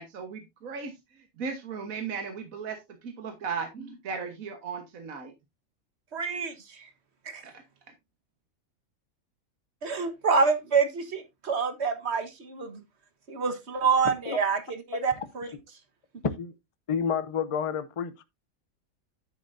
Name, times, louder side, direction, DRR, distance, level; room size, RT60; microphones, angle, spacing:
voice 1, 0.0-5.3 7.4-7.5, right 5 dB, 70° right, 1.7 m, -36 dB
voice 2, 6.1-6.9 7.2-7.4 9.8-12.8 13.3-15.5, right 5 dB, 50° right, 1.6 m, -27 dB
voice 3, 16.2-16.5 16.9-18.2, left 6 dB, 35° left, 0.6 m, -29 dB
10.0 x 8.2 x 2.6 m
omnidirectional pair, 1.5 m